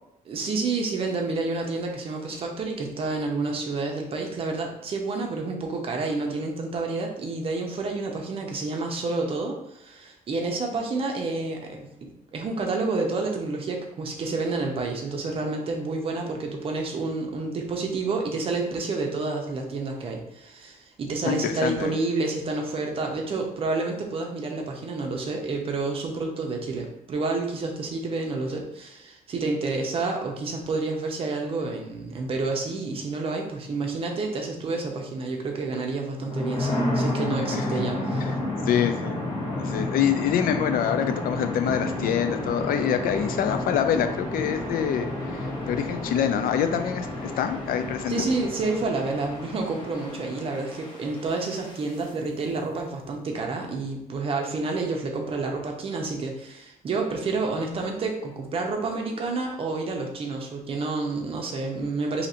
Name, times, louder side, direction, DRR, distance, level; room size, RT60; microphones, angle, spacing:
voice 1, 0.3-38.4 48.1-62.3, right 3 dB, 40° right, 2 dB, 0.6 m, -29 dB
voice 2, 21.3-21.9 37.5-37.6 38.6-39.2 39.6-48.3, left 9 dB, 75° left, 8 dB, 0.4 m, -26 dB
sound 1, 36.1-52.1, left 1 dB, 35° left, 0.9 m, -31 dB
2.8 x 2.5 x 4.2 m, 0.83 s
cardioid pair, 170°, 15 cm